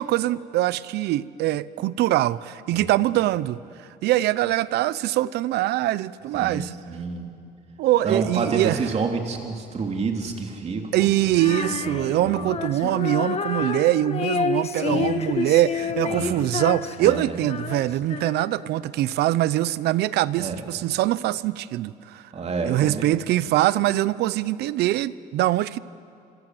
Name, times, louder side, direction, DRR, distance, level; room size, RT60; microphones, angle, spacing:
voice 1, 0.0-3.6 4.0-6.7 7.8-8.8 10.9-22.2 22.6-25.8, right 15 dB, 80° right, 0.7 m, -23 dB
voice 2, 6.3-7.3 8.0-12.6 14.9-15.2 16.1-16.4 17.0-17.4 20.3-20.6 22.3-23.1, right 4 dB, 40° right, 3.2 m, -29 dB
Female singing, 11.3-18.7, left 5 dB, 40° left, 1.6 m, -29 dB
26.5 x 24.5 x 7.8 m
cardioid pair, 110°, 17 cm